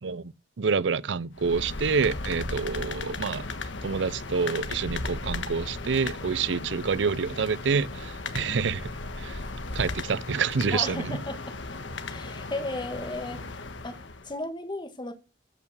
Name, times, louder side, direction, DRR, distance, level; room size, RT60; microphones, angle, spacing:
voice 1, 0.0-3.5 3.8-8.9 9.2-9.5 9.7-11.2, right 5 dB, 75° right, 0.5 m, -28 dB
sound 1, 1.3-14.3, left 3 dB, 85° left, 1.3 m, -36 dB
voice 2, 10.7-11.4 12.1-13.4 13.8-15.1, left 2 dB, 25° left, 1.6 m, -35 dB
13.0 x 5.9 x 6.4 m
head